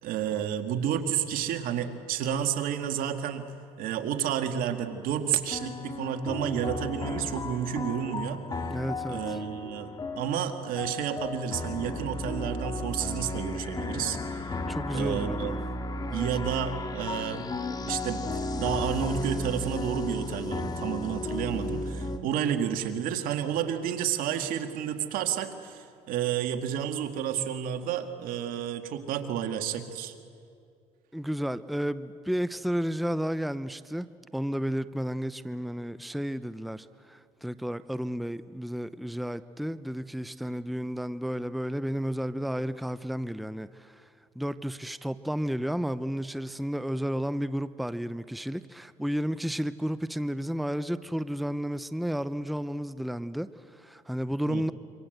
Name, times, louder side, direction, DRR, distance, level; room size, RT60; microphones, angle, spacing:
voice 1, 0.0-3.5 3.8-8.4 9.1-14.5 14.9-15.6 16.1-17.5 17.9-30.1 54.5-54.7, right 9 dB, 75° right, 2.1 m, -31 dB
sound 1, 4.7-5.2 5.5-22.2, left 2 dB, 25° left, 2.2 m, -34 dB
voice 2, 8.7-9.4 14.7-15.6 16.1-16.3 31.1-34.1 34.3-44.1 44.3-54.7, equal, ahead, 0.7 m, -32 dB
27.0 x 25.0 x 8.0 m
supercardioid pair, 85°, 15 cm